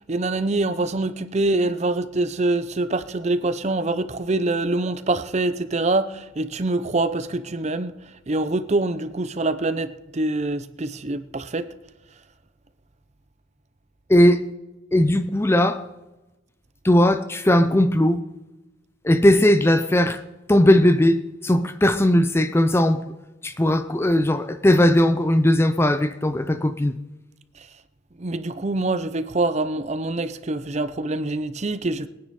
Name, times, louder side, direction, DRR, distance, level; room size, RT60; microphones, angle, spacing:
voice 1, 0.0-11.7 27.6-27.7 28.2-32.1, right 2 dB, 35° right, 0.6 m, -25 dB
voice 2, 14.1-14.5 14.9-15.8 16.8-18.2 19.0-20.2 20.5-23.0 23.4-26.9, left 1 dB, 10° left, 0.4 m, -18 dB
21.0 x 9.6 x 4.2 m
head